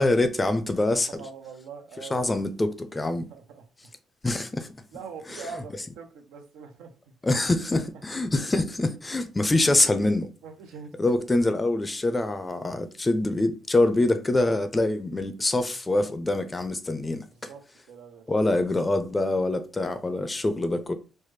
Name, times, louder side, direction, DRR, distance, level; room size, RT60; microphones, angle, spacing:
voice 1, 0.0-1.1 2.1-3.3 4.2-4.7 5.3-5.4 7.2-10.3 11.0-17.5 18.3-20.9, left 2 dB, 20° left, 0.5 m, -25 dB
voice 2, 0.7-2.4 3.3-3.9 4.9-7.1 10.4-11.2 17.3-17.6 17.9-18.3, right 5 dB, 90° right, 0.6 m, -43 dB
3.3 x 2.1 x 3.2 m
cardioid pair, 90°, 0 cm